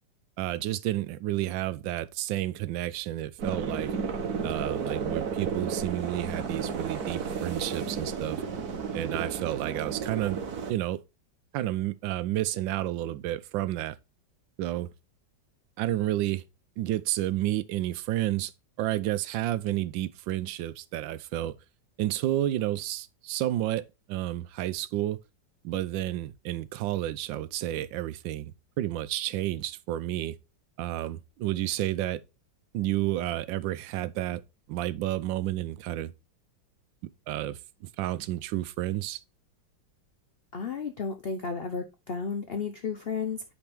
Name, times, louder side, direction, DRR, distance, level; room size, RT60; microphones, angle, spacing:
voice 1, 0.4-3.9 4.4-8.4 8.9-10.4 10.7-11.0 11.5-14.0 14.6-14.9 15.8-16.4 16.8-18.5 18.8-21.5 22.0-25.2 25.6-30.3 30.8-32.2 32.7-34.4 34.7-36.1 37.3-37.6 38.0-39.2, right 14 dB, 90° right, 1.3 m, -30 dB
sound 1, 3.4-10.7, right 5 dB, 60° right, 1.5 m, -33 dB
voice 2, 40.5-43.4, left 5 dB, 80° left, 0.5 m, -33 dB
8.7 x 4.4 x 3.4 m
omnidirectional pair, 2.0 m